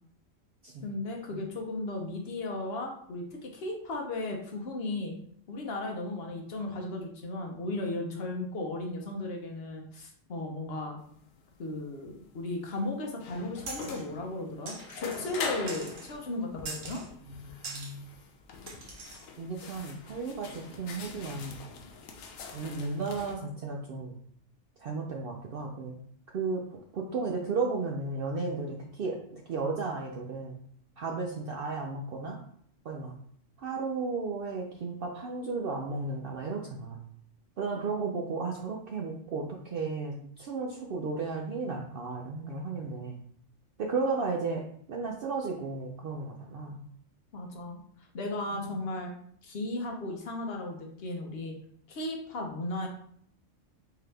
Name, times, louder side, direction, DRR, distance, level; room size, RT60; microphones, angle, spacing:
voice 1, 0.8-5.1 5.5-11.0 11.6-17.0 47.3-47.8 48.1-49.1 49.4-51.6 51.9-52.9, left 2 dB, 55° left, 2 dB, 0.9 m, -35 dB
sound 1, 11.0-23.4, left 4 dB, 85° left, 1.0 m, -43 dB
sound 2, 13.7-14.0 14.7-15.4 15.7-16.1 16.7-17.1 17.6-17.9 18.7-19.3, right 3 dB, 85° right, 1.2 m, -42 dB
voice 2, 17.3-18.0 19.4-21.6 22.5-24.1 24.8-26.0 26.3-30.6 31.0-32.4 32.8-33.2 33.6-37.0 37.6-43.2 43.8-46.8 48.5-48.8, right 4 dB, 65° right, 0 dB, 0.6 m, -34 dB
3.8 x 2.8 x 3.2 m, 0.63 s
omnidirectional pair, 1.3 m